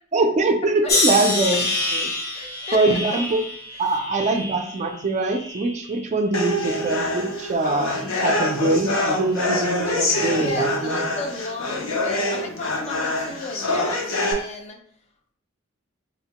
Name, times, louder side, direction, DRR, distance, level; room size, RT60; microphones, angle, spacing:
voice 1, 0.1-2.1 2.7-3.4 3.8-11.0, right 2 dB, 35° right, 5 dB, 0.3 m, -23 dB
sound 1, 0.9-6.0 6.5-7.2 7.9-8.2, left 2 dB, 50° left, 0.8 m, -27 dB
voice 2, 2.3-3.0 3.7-3.9 10.3-14.8, left 2 dB, 35° left, 4 dB, 0.4 m, -34 dB
sound 2, 6.3-14.3, left 1 dB, 80° left, 0.6 m, -25 dB
4.2 x 2.1 x 2.8 m, 0.62 s
head